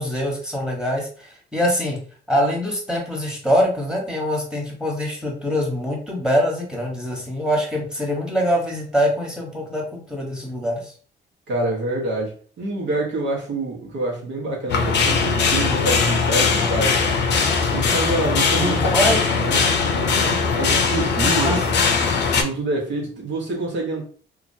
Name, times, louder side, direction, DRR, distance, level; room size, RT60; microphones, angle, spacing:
voice 1, 0.0-10.9 18.5-19.2 21.2-21.6, equal, 5° right, 1.2 m, -24 dB
voice 2, 11.5-12.3 12.6-17.1 17.7-21.6 22.4-24.0, right 2 dB, 70° right, 1.1 m, -26 dB
sound 1, 14.7-22.4, left 5 dB, 60° left, 0.6 m, -20 dB
2.9 x 2.5 x 2.6 m
cardioid pair, 90°, 20 cm